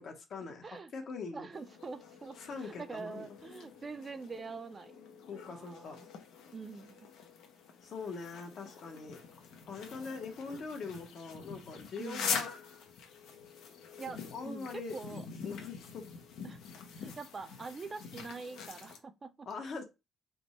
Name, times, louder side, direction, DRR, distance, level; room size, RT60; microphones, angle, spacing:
voice 1, 0.0-1.5 2.4-3.3 5.3-6.0 7.8-9.2 9.7-12.5 14.3-15.0 15.4-16.1 19.5-19.8, left 4 dB, 60° left, 0.9 m, -42 dB
voice 2, 1.3-5.0 5.4-6.1 6.5-7.1 12.0-12.3 14.0-15.3 16.4-16.6 16.9-19.5, right 4 dB, 35° right, 0.4 m, -44 dB
sound 1, 1.5-19.0, left 6 dB, 85° left, 0.7 m, -44 dB
3.4 x 2.0 x 4.0 m
cardioid pair, 90°, 0 cm